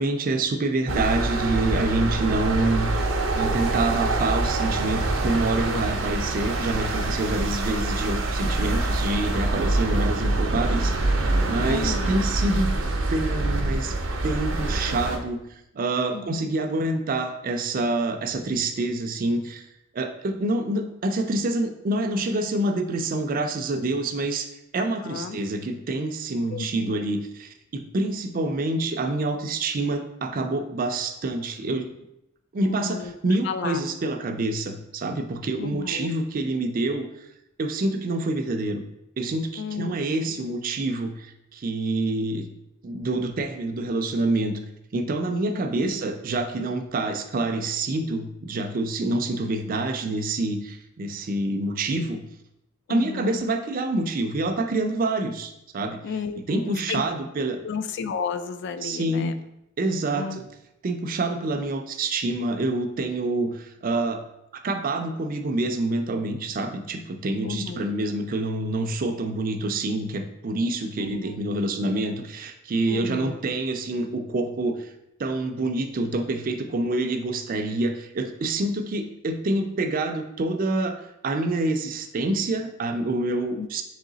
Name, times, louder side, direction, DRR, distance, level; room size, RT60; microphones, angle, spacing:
voice 1, 0.0-11.0 11.5-12.7 13.1-14.0 14.2-15.4 15.7-19.7 19.9-31.9 32.5-37.1 37.6-38.8 39.2-42.5 42.8-44.6 44.9-52.2 52.9-56.0 56.5-57.6 58.8-59.4 59.8-60.5 60.8-64.2 64.5-74.9 75.2-83.8, right 2 dB, 45° right, 6 dB, 0.4 m, -27 dB
sound 1, 0.9-15.2, right 2 dB, 85° right, 0.6 m, -25 dB
voice 2, 11.6-12.2 16.1-16.5 25.0-25.4 26.5-27.0 32.6-33.1 33.4-33.8 35.5-36.1 39.6-40.3 45.8-46.0 52.9-53.5 56.0-57.0 57.6-59.3 60.1-60.4 67.4-67.9 71.0-71.4 72.9-73.4 83.6-83.7, left 5 dB, 60° left, 10 dB, 0.3 m, -33 dB
3.8 x 3.1 x 3.9 m, 0.84 s
head